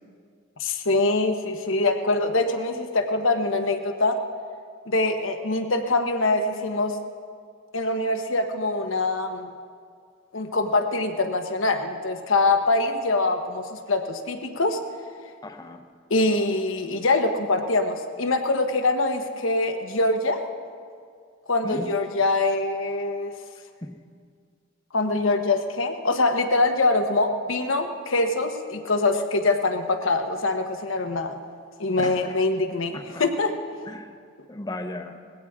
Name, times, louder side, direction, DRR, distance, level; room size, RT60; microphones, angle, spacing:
voice 1, 0.6-4.2 4.9-7.0 7.7-9.5 10.3-14.8 16.1-20.4 21.5-23.3 24.9-31.4 31.8-33.5, left 2 dB, 80° left, 6 dB, 1.2 m, -24 dB
voice 2, 15.4-15.8 21.6-21.9 23.8-23.9 32.0-32.4 32.9-33.2 33.9-34.1 34.5-35.1, left 1 dB, 20° left, 6 dB, 0.9 m, -35 dB
20.0 x 16.5 x 3.7 m, 2.1 s
head